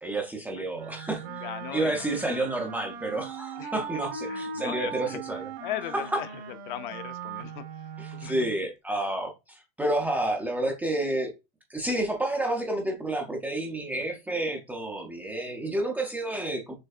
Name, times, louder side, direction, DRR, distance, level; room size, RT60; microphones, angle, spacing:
voice 1, 0.0-1.4 1.7-5.5 5.9-6.2 8.0-11.3 11.7-16.7, right 1 dB, 5° right, 0.4 m, -30 dB
Wind instrument woodwind instrument, 0.7-8.6, right 5 dB, 65° right, 1.3 m, -39 dB
voice 2, 1.3-2.4 3.6-5.2 5.6-6.3 6.7-8.4, left 12 dB, 45° left, 0.5 m, -39 dB
6.4 x 3.2 x 2.4 m
supercardioid pair, 160°, 34 cm